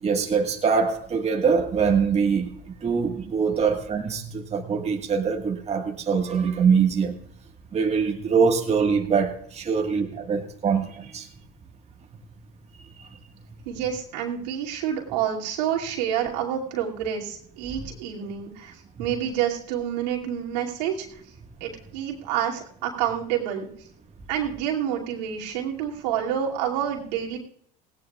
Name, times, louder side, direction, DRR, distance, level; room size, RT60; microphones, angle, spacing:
voice 1, 0.0-2.5 2.8-7.1 7.7-11.3 13.0-13.1 19.0-19.1, right 6 dB, 30° right, 2 dB, 1.6 m, -23 dB
voice 2, 13.6-21.2 21.6-23.7 24.3-27.4, right 9 dB, 80° right, -2 dB, 2.6 m, -28 dB
17.5 x 17.5 x 2.4 m, 0.64 s
hypercardioid pair, 85°, 21 cm